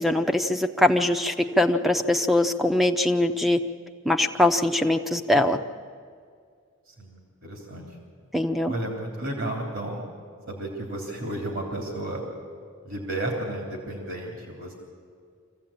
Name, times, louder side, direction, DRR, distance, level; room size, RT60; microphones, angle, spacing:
voice 1, 0.0-3.6 4.1-5.6 8.3-8.7, left 1 dB, ahead, 8 dB, 0.7 m, -22 dB
voice 2, 6.9-7.9 8.6-10.0 10.5-12.2 12.9-14.7, right 1 dB, 65° right, 0 dB, 3.4 m, -33 dB
25.5 x 15.5 x 8.8 m, 2.1 s
head